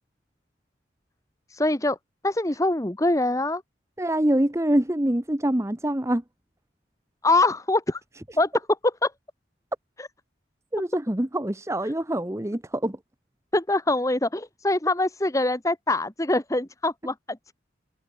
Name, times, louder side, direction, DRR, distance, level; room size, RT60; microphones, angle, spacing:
voice 1, 1.5-2.0 2.2-3.6 7.2-8.0 8.4-8.5 8.8-9.1 10.0-10.1 11.8-11.9 13.5-17.4, left 2 dB, 15° left, 1.2 m, -24 dB
voice 2, 4.0-6.2 10.7-13.0, right 1 dB, 15° right, 1.0 m, -25 dB
head